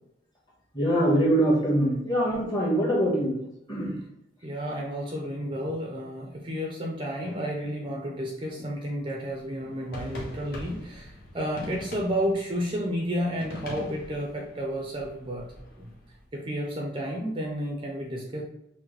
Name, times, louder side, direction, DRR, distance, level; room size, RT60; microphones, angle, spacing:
voice 1, 0.7-3.3 3.7-4.0, right 1 dB, 20° left, -5 dB, 1.4 m, -23 dB
voice 2, 4.4-15.4 15.8-15.9 16.3-18.4, equal, 25° right, -1 dB, 0.5 m, -31 dB
sound 1, 9.3-16.2, left 1 dB, 50° left, 1.1 m, -43 dB
5.9 x 2.1 x 3.1 m, 0.86 s
head